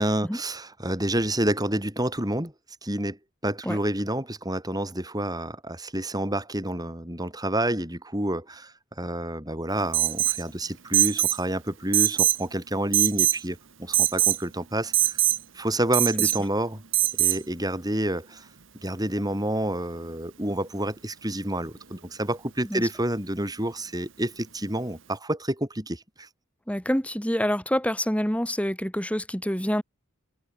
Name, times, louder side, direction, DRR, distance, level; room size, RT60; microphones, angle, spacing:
voice 1, 0.0-2.5 2.8-3.2 3.4-15.2 15.5-16.8 17.2-18.5 18.8-26.3, right 1 dB, 20° right, 7.6 m, -29 dB
Alarm, 9.9-10.4 10.9-11.4 11.9-12.4 12.9-13.4 13.9-14.4 14.9-15.4 15.9-16.4 16.9-17.4, right 15 dB, 65° right, 2.5 m, -22 dB
voice 2, 26.7-29.8, equal, 5° left, 5.8 m, -26 dB
head